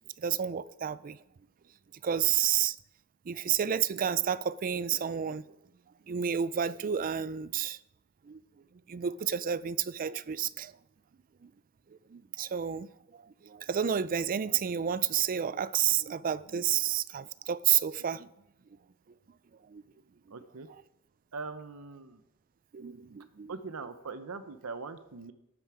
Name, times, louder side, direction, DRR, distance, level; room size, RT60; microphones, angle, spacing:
voice 1, 0.2-1.2 2.0-2.8 3.3-5.4 6.1-7.8 8.3-8.4 8.9-10.7 11.4-11.5 12.1-12.9 13.4-18.3 19.7-19.8 22.7-23.5, right 9 dB, 40° right, 0.4 m, -30 dB
voice 2, 20.3-20.7 21.3-22.2 23.5-25.3, right 4 dB, 70° right, 0.8 m, -41 dB
12.5 x 9.2 x 4.9 m
head